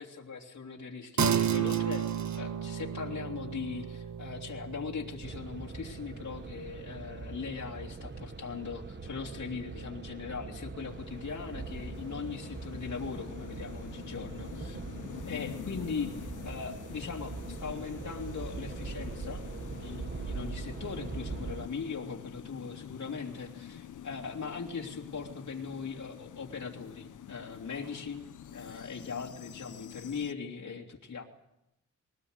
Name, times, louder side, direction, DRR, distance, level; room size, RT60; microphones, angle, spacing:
voice 1, 0.0-2.1 2.4-14.8 15.3-19.4 19.8-28.2 28.5-31.2, left 5 dB, 65° left, -1 dB, 3.0 m, -40 dB
sound 1, 1.2-10.9, right 8 dB, 70° right, 1.6 m, -35 dB
sound 2, 5.2-21.7, right 4 dB, 35° right, 1.4 m, -42 dB
sound 3, 10.7-30.3, left 9 dB, 85° left, 1.0 m, -46 dB
22.0 x 18.0 x 8.1 m, 0.85 s
cardioid pair, 85°, 30 cm